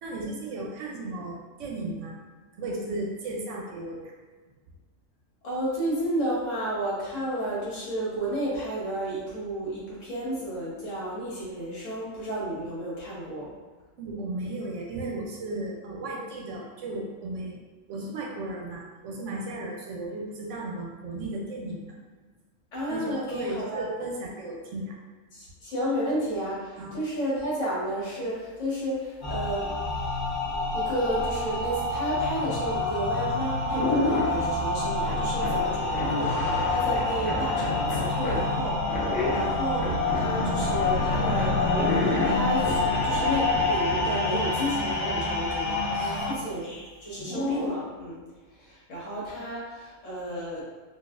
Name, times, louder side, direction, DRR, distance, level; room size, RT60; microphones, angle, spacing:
voice 1, 0.0-2.2 2.6-4.1 14.0-17.6 17.9-21.9 22.9-25.0 26.8-27.0 45.9-46.2, right 2 dB, 70° right, -1 dB, 0.9 m, -35 dB
voice 2, 5.4-13.5 22.7-23.8 25.3-29.7 30.7-41.9 42.2-48.2 48.6-50.6, right 1 dB, 65° left, -6 dB, 1.4 m, -32 dB
sound 1, 29.2-46.3, left 3 dB, 40° left, 0.8 m, -27 dB
sound 2, 33.1-33.3 33.7-34.5 35.1-38.4 38.9-44.1 47.2-47.7, left 2 dB, 85° left, 1.2 m, -30 dB
4.0 x 2.4 x 2.4 m, 1.4 s
omnidirectional pair, 1.4 m